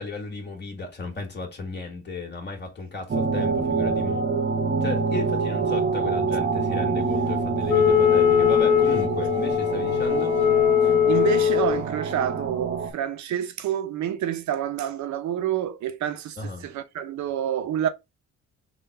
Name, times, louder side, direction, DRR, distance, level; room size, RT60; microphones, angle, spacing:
voice 1, 0.0-4.3 4.8-10.4 16.4-16.7, left 3 dB, 35° left, 1.7 m, -34 dB
sound 1, 3.1-12.9, right 4 dB, 35° right, 0.8 m, -26 dB
Wind instrument woodwind instrument, 7.7-11.8, left 10 dB, 85° left, 0.6 m, -20 dB
voice 2, 10.8-17.9, right 10 dB, 70° right, 0.6 m, -28 dB
3.8 x 2.3 x 4.0 m
cardioid pair, 85°, 30 cm